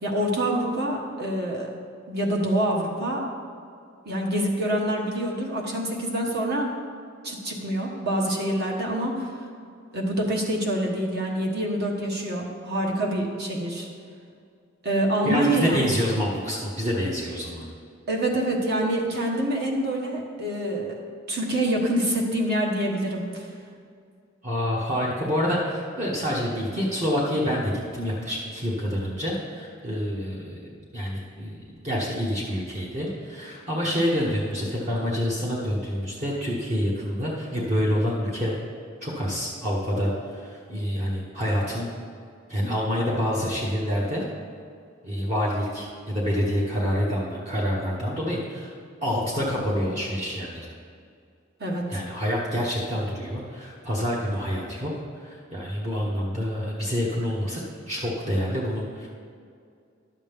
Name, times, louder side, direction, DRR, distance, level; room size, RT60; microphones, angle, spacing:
voice 1, 0.0-1.7 2.1-3.3 4.0-6.7 7.2-9.3 9.9-13.9 14.8-15.8 18.1-21.0 21.3-23.5 51.6-52.0, right 1 dB, 55° right, -1 dB, 1.4 m, -26 dB
voice 2, 15.2-17.7 24.4-38.5 39.0-41.9 42.5-44.2 45.0-48.7 49.0-50.7 51.9-59.1, equal, 35° right, -5 dB, 1.1 m, -27 dB
11.5 x 7.4 x 3.5 m, 2.3 s
head